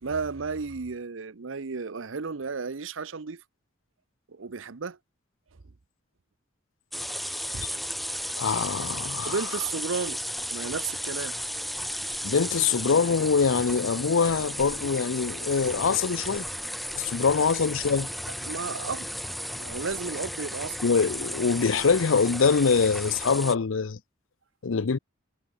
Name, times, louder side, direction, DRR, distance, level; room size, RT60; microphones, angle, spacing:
voice 1, 0.0-3.4 4.3-5.0 7.5-7.7 9.2-10.2 10.5-11.4 17.4-17.5 18.4-19.1 19.6-20.8, right 4 dB, 75° right, 0.8 m, -33 dB
sound 1, 6.9-23.6, equal, ahead, 1.0 m, -34 dB
voice 2, 8.4-9.4 12.2-16.5 16.9-18.1 20.8-24.0 24.6-25.0, left 5 dB, 80° left, 0.6 m, -24 dB
head